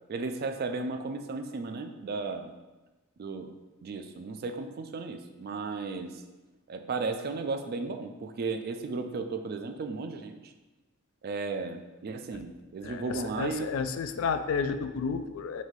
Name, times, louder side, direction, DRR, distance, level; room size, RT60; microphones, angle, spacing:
voice 1, 0.1-2.5 3.2-3.5 3.8-6.2 6.7-10.5 11.2-13.7, right 3 dB, 45° right, 7 dB, 0.3 m, -35 dB
voice 2, 12.8-15.6, left 5 dB, 65° left, 9 dB, 0.3 m, -31 dB
4.0 x 2.6 x 4.6 m, 1.1 s
head